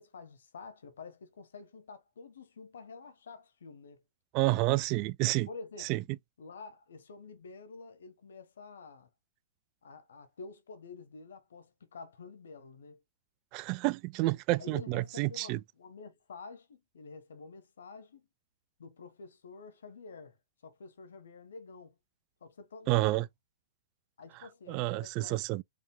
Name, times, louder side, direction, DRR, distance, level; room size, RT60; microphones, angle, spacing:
voice 1, 0.0-4.0 5.5-5.9 6.4-9.1 9.8-13.0 14.6-18.3 18.8-20.4 20.6-22.0 22.4-23.2 24.2-25.4, left 4 dB, 80° left, 1.2 m, -49 dB
voice 2, 4.3-5.5 5.8-6.0 13.5-15.6 22.9-23.3 24.7-25.6, right 19 dB, 40° right, 0.3 m, -29 dB
5.0 x 3.5 x 2.2 m
hypercardioid pair, 125°, 0 cm